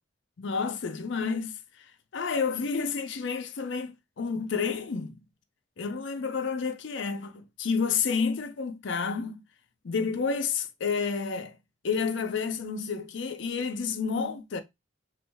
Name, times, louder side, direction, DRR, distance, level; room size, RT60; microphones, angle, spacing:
voice 1, 0.4-5.2 5.8-9.4 9.8-11.6 11.8-14.6, left 5 dB, 70° left, 0.5 m, -30 dB
3.0 x 2.5 x 3.3 m
head